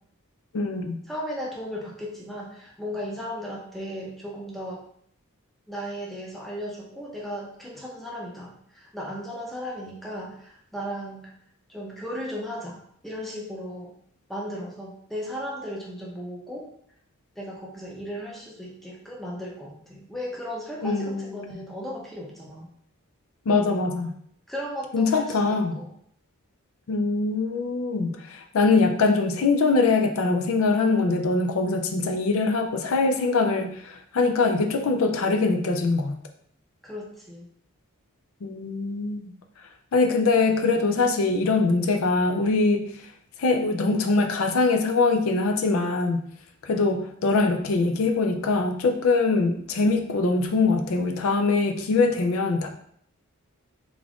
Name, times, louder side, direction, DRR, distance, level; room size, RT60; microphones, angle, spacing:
voice 1, 0.5-1.0 20.8-21.3 23.5-24.1 24.9-25.8 26.9-36.2 38.4-39.2 39.9-42.9 43.4-46.2 46.6-52.7, left 3 dB, 70° left, 5 dB, 0.4 m, -23 dB
voice 2, 1.1-4.8 5.7-11.3 11.7-13.9 14.3-16.7 17.4-22.7 24.5-25.9 36.8-37.5, equal, ahead, -4 dB, 0.6 m, -36 dB
3.5 x 2.4 x 3.5 m, 0.66 s
head